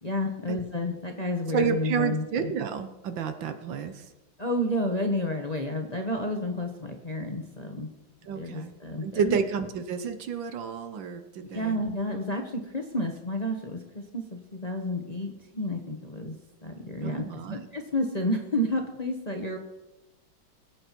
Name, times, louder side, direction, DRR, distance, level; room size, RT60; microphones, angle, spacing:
voice 1, 0.0-2.5 4.4-7.9 8.3-9.3 11.5-16.4 16.6-19.6, left 1 dB, 25° left, 2 dB, 1.0 m, -30 dB
voice 2, 1.5-4.0 8.3-8.7 9.0-11.8 17.0-17.7, right 6 dB, 70° right, 9 dB, 1.7 m, -30 dB
21.5 x 8.7 x 4.6 m, 1.0 s
omnidirectional pair, 2.2 m